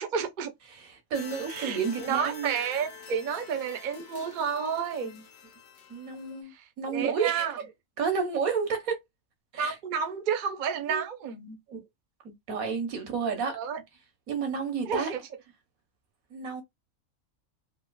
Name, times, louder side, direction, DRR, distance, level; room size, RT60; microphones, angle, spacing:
voice 1, 0.0-0.5 1.5-5.2 6.9-7.6 9.6-11.6 13.4-13.8 14.9-15.2, right 7 dB, 45° right, 0.7 m, -31 dB
voice 2, 0.7-2.5 5.9-7.7 8.0-9.0 9.5-9.7 10.9-11.0 11.7-11.9 12.2-13.6 14.3-15.1 16.3-16.6, right 6 dB, 85° right, 1.5 m, -31 dB
sound 1, 1.1-6.4, left 4 dB, 55° left, 0.9 m, -46 dB
3.6 x 2.8 x 2.2 m
omnidirectional pair, 1.4 m